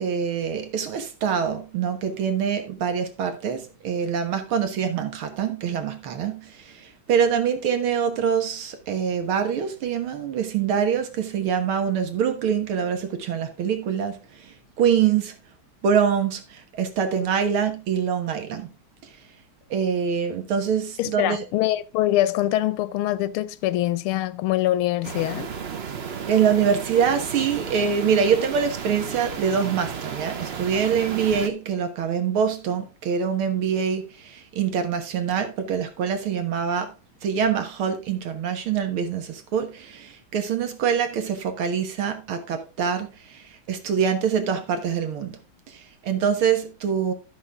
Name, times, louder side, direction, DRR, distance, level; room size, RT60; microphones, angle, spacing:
voice 1, 0.0-15.4 15.8-18.7 19.7-21.5 26.3-36.9 37.2-45.4 45.7-47.1, right 7 dB, 85° right, 2.2 m, -25 dB
voice 2, 21.0-25.5, left 14 dB, 90° left, 1.6 m, -24 dB
sound 1, 25.0-31.5, right 6 dB, 60° right, 0.6 m, -33 dB
13.0 x 6.5 x 3.5 m
omnidirectional pair, 2.3 m